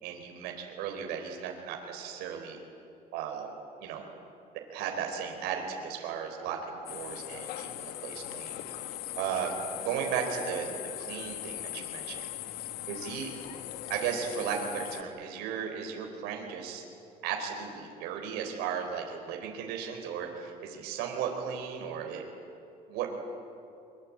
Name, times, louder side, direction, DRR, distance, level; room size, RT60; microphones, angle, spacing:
voice 1, 0.0-2.6 3.1-3.5 3.8-4.1 4.7-6.6 6.9-9.6 9.8-10.7 11.0-12.3 12.9-13.3 13.9-16.8 17.2-22.2 22.9-23.2, right 7 dB, 85° right, 2 dB, 4.3 m, -35 dB
sound 1, 6.9-15.0, left 13 dB, 75° left, 1.4 m, -40 dB
24.5 x 23.0 x 8.7 m, 2.7 s
cardioid pair, 150°, 16 cm